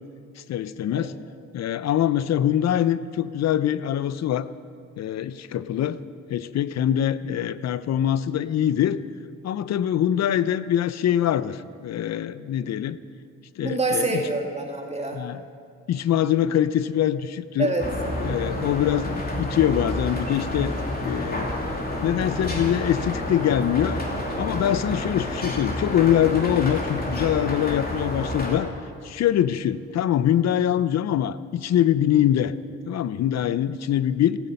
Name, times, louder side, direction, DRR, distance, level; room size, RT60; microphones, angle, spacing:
voice 1, 0.5-1.1 1.5-4.5 5.0-6.0 6.3-9.0 9.4-13.0 13.6-14.1 15.1-15.4 15.9-17.7 18.2-20.7 21.0-21.5 22.0-24.0 24.3-28.7 29.0-32.5 32.9-34.4, left 10 dB, 60° left, 15 dB, 0.7 m, -23 dB
voice 2, 13.6-15.2 17.6-17.9, right 3 dB, 20° right, 1 dB, 2.2 m, -26 dB
sound 1, 17.8-28.6, left 1 dB, 30° left, 2.9 m, -29 dB
16.0 x 14.0 x 5.4 m, 2.5 s
cardioid pair, 90°, 30 cm